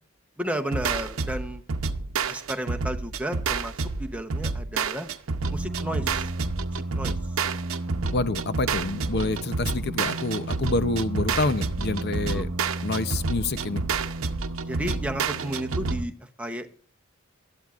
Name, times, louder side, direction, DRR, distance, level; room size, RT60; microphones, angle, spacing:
voice 1, 0.4-1.6 2.3-5.1 5.5-6.3 6.9-7.2 12.3-12.4 14.7-16.7, right 1 dB, 5° right, 5 dB, 0.9 m, -33 dB
sound 1, 0.7-16.0, right 4 dB, 90° right, 0.8 m, -29 dB
voice 2, 8.1-12.5 12.8-13.8, left 2 dB, 50° left, 12 dB, 0.7 m, -27 dB
20.0 x 12.5 x 2.5 m, 0.42 s
head